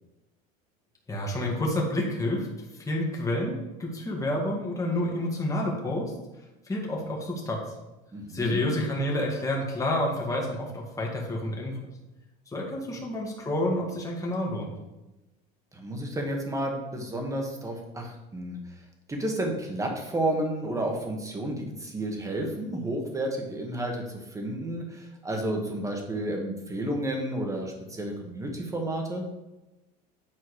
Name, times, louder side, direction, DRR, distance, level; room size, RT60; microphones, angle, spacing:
voice 1, 1.1-2.5 2.8-6.1 6.7-7.6 8.3-11.8 12.5-14.7, left 1 dB, 15° left, -2 dB, 2.0 m, -29 dB
voice 2, 8.1-8.6 12.9-13.0 15.7-18.6 19.1-29.3, right 1 dB, 15° right, 1 dB, 1.8 m, -31 dB
9.0 x 4.5 x 4.9 m, 1.0 s
supercardioid pair, 110°, 20 cm